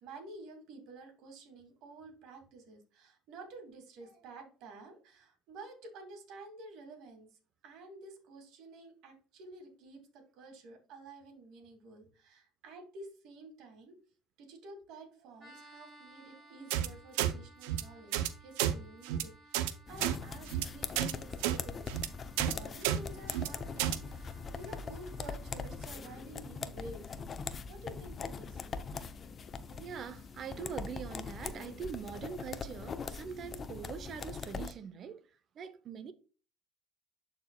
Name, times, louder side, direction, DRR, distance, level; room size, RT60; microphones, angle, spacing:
voice 1, 0.0-7.3 7.6-14.0 14.4-21.9 22.4-27.1 27.7-28.6, right 2 dB, 70° right, 2.4 m, -51 dB
sound 1, 15.4-26.0, right 1 dB, 30° right, 2.6 m, -60 dB
sound 2, 16.7-16.9 17.2-17.3 17.6-17.8 18.1-18.3 18.6-18.7 19.0-19.2 19.5-19.7 20.0-20.1 20.5-20.6 20.9-21.1 21.4-21.6 21.9-22.1 22.4-22.5 22.8-23.0 23.3-23.5 23.8-24.0, right 12 dB, 85° right, 0.6 m, -30 dB
sound 3, 19.9-34.7, left 5 dB, 40° left, 0.6 m, -42 dB
voice 2, 29.7-35.2 35.5-36.1, right 7 dB, 50° right, 0.8 m, -43 dB
11.5 x 4.4 x 2.3 m
supercardioid pair, 85°, 0 cm